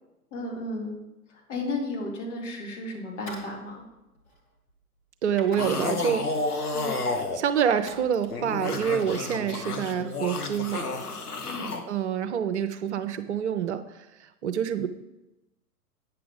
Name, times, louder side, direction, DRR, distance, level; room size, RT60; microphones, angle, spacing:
voice 1, 0.3-1.0 1.3-3.9 6.7-7.0 11.4-11.7, left 2 dB, 50° left, 0 dB, 2.9 m, -34 dB
sound 1, 3.1-4.8 5.3-6.2 6.5-6.9 7.3-8.9, equal, 5° left, 0.3 m, -46 dB
voice 2, 5.2-6.3 7.0-10.9 11.9-14.9, right 8 dB, 50° right, 9 dB, 0.7 m, -27 dB
sound 2, 5.6-7.4 8.1-11.8, left 3 dB, 75° left, 1.3 m, -31 dB
9.0 x 6.9 x 5.1 m, 0.95 s
figure-of-eight pair, 105°, 46 cm